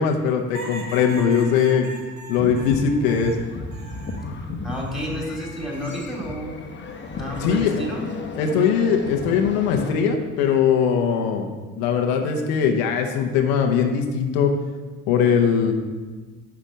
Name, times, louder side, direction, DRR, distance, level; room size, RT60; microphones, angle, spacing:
voice 1, 0.0-1.9 2.3-3.4 7.4-7.7 8.4-11.5 11.8-14.5 15.1-15.7, left 7 dB, 85° left, 3 dB, 0.8 m, -20 dB
sound 1, 0.5-4.3 4.7-5.5 6.9-7.3, right 1 dB, 45° right, 1.6 m, -40 dB
sound 2, 2.4-9.9, left 3 dB, 30° left, 1.0 m, -34 dB
voice 2, 4.6-6.6 7.1-8.0, equal, ahead, -2 dB, 2.5 m, -30 dB
6.0 x 5.7 x 5.1 m, 1.3 s
supercardioid pair, 75°, 38 cm